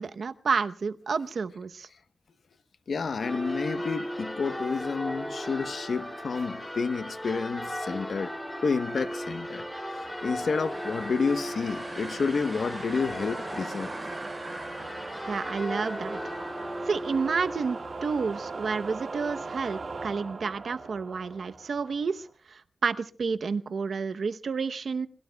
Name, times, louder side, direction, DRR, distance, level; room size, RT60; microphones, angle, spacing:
voice 1, 0.0-1.9 15.3-16.2 16.8-25.1, right 5 dB, 75° right, 0.9 m, -30 dB
voice 2, 2.9-8.3 8.6-9.7 9.9-13.9 14.8-14.9, left 5 dB, 75° left, 1.0 m, -30 dB
Church bell, 3.2-18.9, equal, 5° left, 4.1 m, -37 dB
sound 1, 5.8-22.3, right 3 dB, 55° right, 2.6 m, -42 dB
sound 2, 9.9-19.7, right 2 dB, 35° right, 4.8 m, -44 dB
27.5 x 22.0 x 2.3 m
wide cardioid pair, 125°, 0 cm